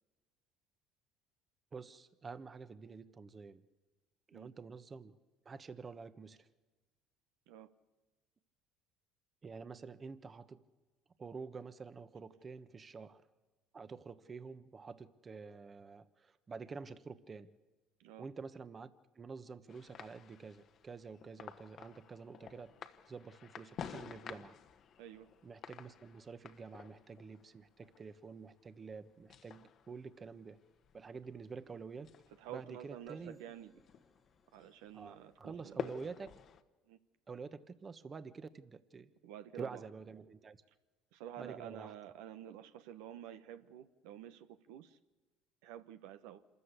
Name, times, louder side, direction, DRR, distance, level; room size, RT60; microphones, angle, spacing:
voice 1, 1.7-3.7 4.3-5.2 5.4-6.5 9.4-10.6 11.2-13.3 13.7-17.5 18.2-22.8 23.1-24.6 25.4-30.6 30.9-32.1 32.5-33.4 34.9-36.4 37.3-39.1 39.5-40.6 41.4-41.9, right 5 dB, 30° right, 12 dB, 1.3 m, -48 dB
sound 1, 19.7-36.6, left 8 dB, 50° left, 1.3 m, -51 dB
voice 2, 25.0-25.3 32.4-33.7 34.5-35.8 36.9-37.0 39.2-39.8 41.1-45.0 45.6-46.4, right 11 dB, 80° right, 9 dB, 1.1 m, -50 dB
sound 2, 33.1-36.6, equal, 5° left, 1.7 m, -67 dB
26.5 x 14.0 x 8.3 m, 1.2 s
supercardioid pair, 80°, 0 cm